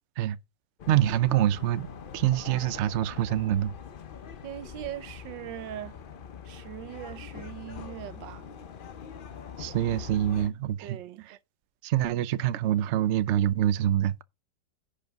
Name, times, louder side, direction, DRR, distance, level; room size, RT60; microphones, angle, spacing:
sound 1, 0.8-10.5, left 7 dB, 65° left, 0.5 m, -43 dB
voice 1, 0.9-1.9 2.1-3.7 9.6-11.0 11.8-14.2, right 12 dB, 70° right, 0.6 m, -25 dB
voice 2, 4.4-6.0 6.4-8.5 10.8-11.3, right 13 dB, 85° right, 1.5 m, -40 dB
10.5 x 5.3 x 4.7 m
omnidirectional pair, 1.9 m